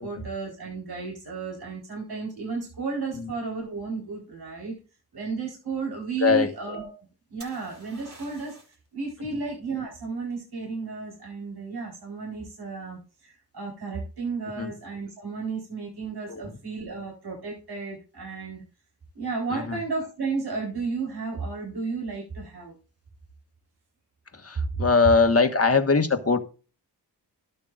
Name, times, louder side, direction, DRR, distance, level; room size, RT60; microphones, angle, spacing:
voice 1, 0.0-4.8 5.1-6.9 7.3-8.6 8.9-18.6 19.1-22.8, right 4 dB, 65° right, -1 dB, 4.3 m, -33 dB
voice 2, 6.2-6.8 14.6-14.7 16.3-16.6 19.5-19.8 24.3-26.4, left 4 dB, 35° left, 8 dB, 1.5 m, -22 dB
sound 1, 7.4-8.9 12.5-13.0, right 2 dB, 45° right, 5.5 m, -49 dB
12.0 x 9.4 x 2.5 m, 0.34 s
cardioid pair, 60°, 41 cm